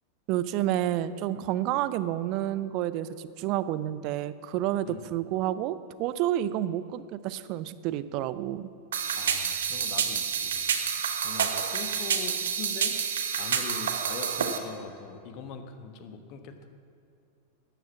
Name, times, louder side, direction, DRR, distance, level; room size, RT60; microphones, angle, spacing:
voice 1, 0.3-8.7, right 12 dB, 40° right, 15 dB, 0.5 m, -29 dB
sound 1, 8.9-14.6, right 7 dB, 60° right, 1.0 m, -28 dB
voice 2, 9.1-10.7 11.2-13.0 13.4-16.7, left 6 dB, 40° left, 7 dB, 1.2 m, -42 dB
13.0 x 9.3 x 7.1 m, 2.6 s
figure-of-eight pair, 90°, 0 cm